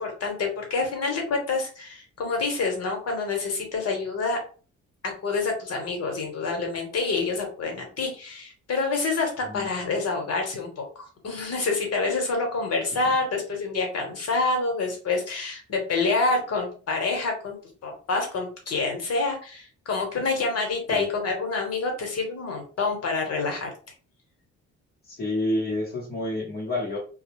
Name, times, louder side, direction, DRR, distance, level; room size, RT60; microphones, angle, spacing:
voice 1, 0.0-4.4 5.2-17.6 17.8-23.7, left 3 dB, 55° left, 2 dB, 1.1 m, -27 dB
voice 2, 25.0-27.0, left 1 dB, 35° left, -6 dB, 0.9 m, -29 dB
2.2 x 2.1 x 3.0 m, 0.39 s
cardioid pair, 90°, 30 cm